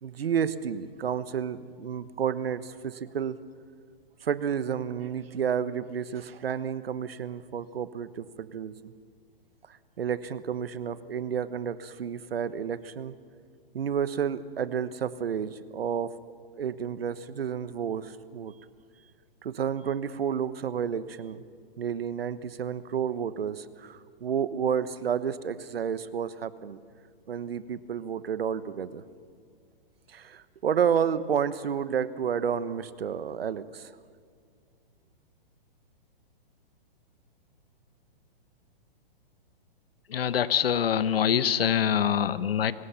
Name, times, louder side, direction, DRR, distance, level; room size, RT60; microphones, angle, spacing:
voice 1, 0.0-3.4 4.2-8.9 10.0-13.1 13.7-16.2 16.6-18.5 19.4-21.4 21.8-26.8 27.3-29.0 30.1-33.9, right 8 dB, 85° right, 14 dB, 1.1 m, -31 dB
voice 2, 40.1-42.7, left 9 dB, 75° left, 14 dB, 1.1 m, -24 dB
25.0 x 19.5 x 5.8 m, 2.2 s
hypercardioid pair, 135°, 29 cm